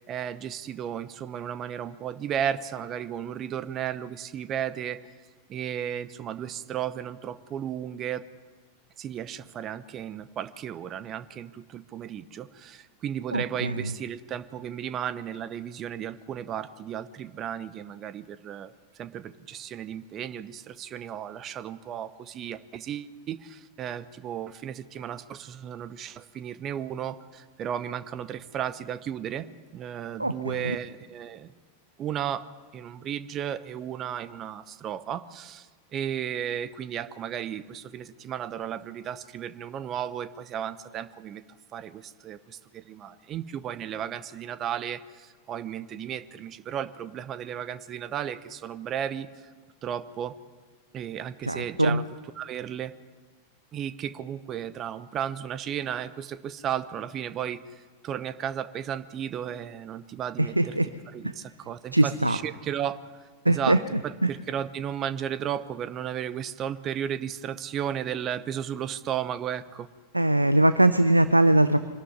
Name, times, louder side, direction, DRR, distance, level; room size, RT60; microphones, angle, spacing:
voice 1, 0.1-5.1 5.5-8.2 9.0-29.5 29.7-31.5 32.0-32.4 32.7-41.4 41.7-49.5 49.8-50.4 50.9-52.0 52.4-53.0 53.7-60.8 61.1-69.9, right 9 dB, 30° right, 15 dB, 0.8 m, -34 dB
voice 2, 13.3-13.9 30.2-30.8 51.4-52.0 60.4-60.9 61.9-62.4 63.4-63.8 64.2-64.3 70.1-71.8, right 1 dB, 85° right, 13 dB, 0.6 m, -22 dB
25.0 x 12.5 x 9.6 m, 1.4 s
figure-of-eight pair, 90°, 0 cm